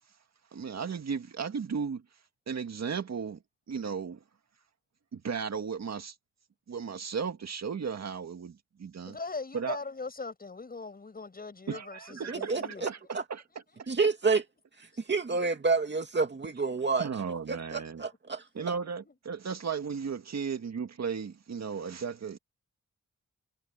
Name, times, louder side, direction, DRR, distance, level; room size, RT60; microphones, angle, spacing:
voice 1, 0.5-2.0 2.5-3.4 3.7-4.2 5.1-6.2 6.7-9.2 9.5-9.8 11.7-13.4 13.8-13.9 17.0-18.0 18.5-22.4, right 6 dB, 55° right, 2.0 m, -35 dB
voice 2, 9.1-12.8 15.3-15.4 18.6-18.7, left 4 dB, 30° left, 6.9 m, -40 dB
voice 3, 12.3-12.9 13.9-14.4 14.8-17.1 17.5-18.4, right 4 dB, 35° right, 2.3 m, -29 dB
wide cardioid pair, 175°, 31 cm